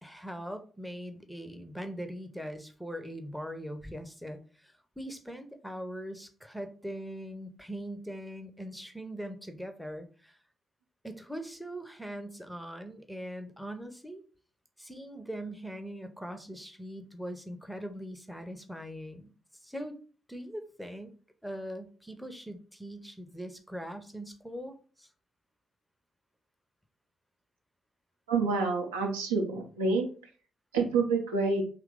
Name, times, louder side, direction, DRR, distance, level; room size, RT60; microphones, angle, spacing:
voice 1, 0.0-10.4 11.0-14.2 14.8-19.3 19.6-20.0 20.3-21.1 21.4-25.1, equal, ahead, 7 dB, 0.6 m, -41 dB
voice 2, 28.3-30.1 30.7-31.6, right 4 dB, 75° right, 2 dB, 0.5 m, -27 dB
2.9 x 2.4 x 3.4 m, 0.39 s
figure-of-eight pair, 40°, 0 cm